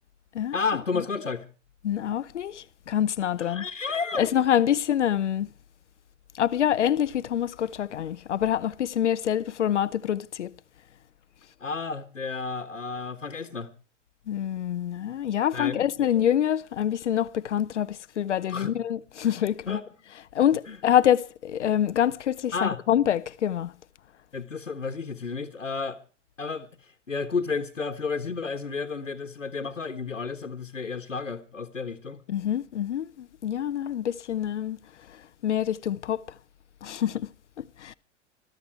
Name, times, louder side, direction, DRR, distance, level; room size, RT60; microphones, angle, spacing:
voice 1, 0.5-1.5 3.4-4.3 11.6-13.7 15.5-16.1 18.5-18.7 19.7-19.8 20.7-20.8 22.5-22.8 24.3-26.0 26.4-32.2, left 4 dB, 90° left, 1.5 m, -32 dB
voice 2, 1.8-3.7 4.2-5.5 6.3-10.5 14.3-19.8 20.3-23.7 32.3-34.8 35.1-36.3 36.8-37.9, left 10 dB, 70° left, 0.8 m, -26 dB
22.0 x 13.0 x 4.7 m
figure-of-eight pair, 95°, 37 cm